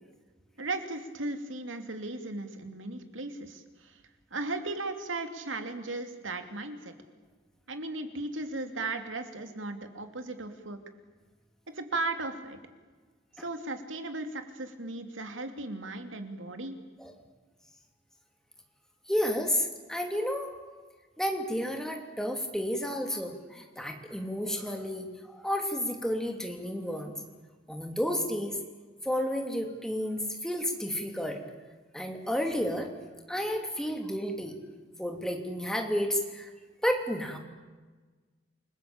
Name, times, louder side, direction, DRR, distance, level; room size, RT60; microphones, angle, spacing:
voice 1, 0.6-4.0 4.3-6.9 7.7-10.8 11.7-12.6 13.4-16.8, right 2 dB, 90° right, 7 dB, 2.8 m, -36 dB
voice 2, 19.1-20.5 21.2-27.1 27.7-28.6 29.0-31.4 31.9-32.9 33.3-34.5 35.0-36.5 36.8-37.4, equal, 5° left, 3 dB, 3.0 m, -31 dB
29.0 x 20.0 x 8.7 m, 1.3 s
head